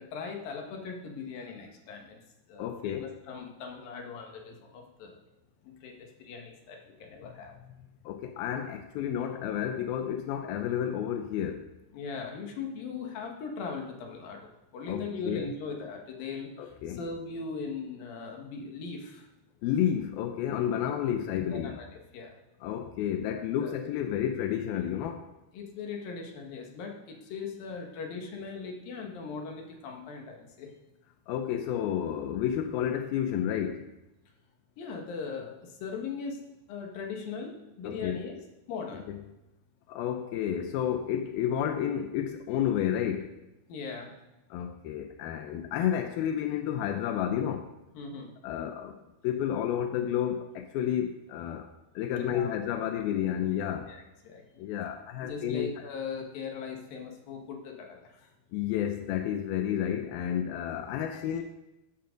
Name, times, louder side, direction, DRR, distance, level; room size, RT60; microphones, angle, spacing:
voice 1, 0.0-2.2 2.5-5.1 5.6-7.6 11.9-14.4 14.7-16.5 16.9-19.3 20.7-20.9 21.5-22.3 23.3-23.7 25.5-30.7 34.8-36.4 36.7-38.4 38.7-39.0 43.7-44.1 47.9-48.3 52.3-52.5 53.9-54.6 55.2-58.1 61.1-61.4, left 5 dB, 60° left, 1 dB, 3.1 m, -39 dB
voice 2, 2.6-3.1 7.2-7.3 8.1-11.7 14.9-15.4 16.6-17.0 19.6-21.7 22.6-25.3 31.3-33.9 37.8-38.2 39.1-39.2 39.9-43.4 44.5-47.7 48.4-49.0 49.2-51.7 52.0-53.9 54.6-55.7 58.5-61.4, left 10 dB, 80° left, 6 dB, 2.2 m, -31 dB
14.5 x 12.5 x 3.9 m, 0.95 s
omnidirectional pair, 5.1 m